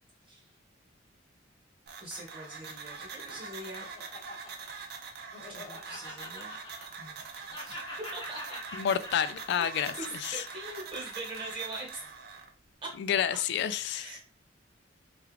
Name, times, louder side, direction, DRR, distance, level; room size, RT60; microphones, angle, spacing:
sound 1, 1.9-12.5, right 5 dB, 55° right, 0.6 m, -44 dB
voice 1, 2.0-3.9 5.5-6.5 7.0-7.8 8.1-8.6 10.0-12.0 12.8-12.9 13.9-14.2, right 2 dB, 25° right, -2 dB, 1.3 m, -42 dB
Laughter, 3.0-7.2 7.5-12.0, left 1 dB, 25° left, 0.9 m, -46 dB
voice 2, 8.7-9.9 10.2-10.4 13.0-14.1, left 8 dB, 60° left, 13 dB, 0.3 m, -29 dB
3.3 x 2.4 x 3.2 m, 0.38 s
head